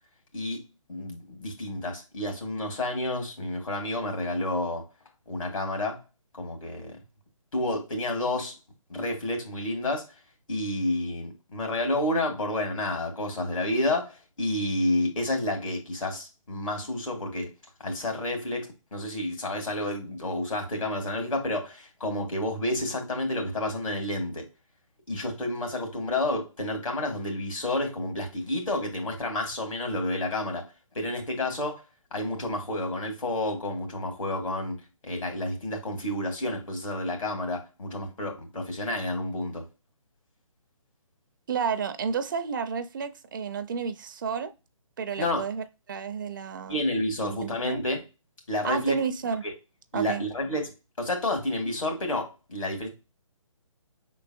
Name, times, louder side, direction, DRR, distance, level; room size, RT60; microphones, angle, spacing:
voice 1, 0.9-4.9 5.3-6.0 6.3-7.0 7.5-8.5 8.9-10.1 10.5-17.5 17.8-24.4 25.1-30.7 30.9-31.8 32.1-34.8 35.0-39.6 45.2-45.4 46.7-48.0 48.5-49.0 49.9-50.7 51.0-52.9, left 1 dB, 70° left, 2.1 m, -30 dB
voice 2, 41.5-44.5 45.0-46.8 47.2-47.9 48.6-49.4 49.9-50.2, right 6 dB, 35° right, 0.5 m, -31 dB
5.3 x 3.8 x 2.4 m
figure-of-eight pair, 145°, 17 cm